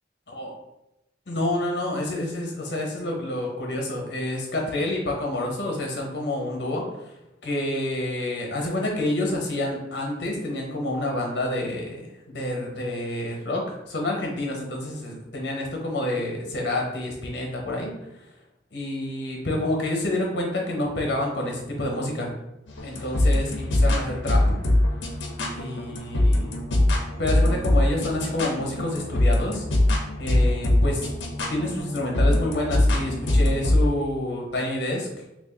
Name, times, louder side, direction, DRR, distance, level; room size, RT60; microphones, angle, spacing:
voice 1, 1.3-7.1 7.4-17.9 18.7-22.3 22.8-24.4 25.5-26.6 27.2-29.6 30.2-31.1 31.5-35.1, left 1 dB, 65° left, 0 dB, 0.9 m, -28 dB
sound 1, 22.7-33.9, left 1 dB, 85° left, 0.6 m, -23 dB
3.1 x 2.5 x 3.7 m, 0.91 s
head